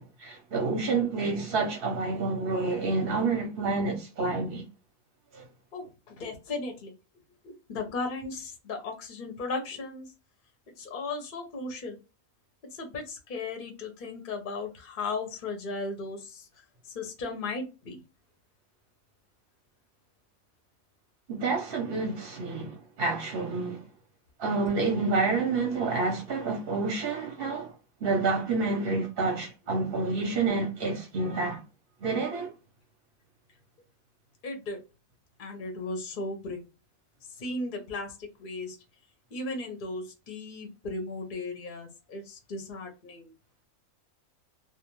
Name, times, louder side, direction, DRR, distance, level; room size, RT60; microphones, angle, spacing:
voice 1, 0.0-4.6 5.3-5.4 21.3-23.8 24.4-27.7 28.0-31.6 32.0-32.5, right 3 dB, 55° right, 0.7 m, -28 dB
voice 2, 5.7-6.9 7.4-10.1 10.8-12.0 12.7-16.4 16.9-18.0 34.4-34.8 35.4-36.6 37.4-38.8 39.3-43.3, left 3 dB, 50° left, 0.7 m, -36 dB
2.4 x 2.2 x 2.9 m
omnidirectional pair, 1.5 m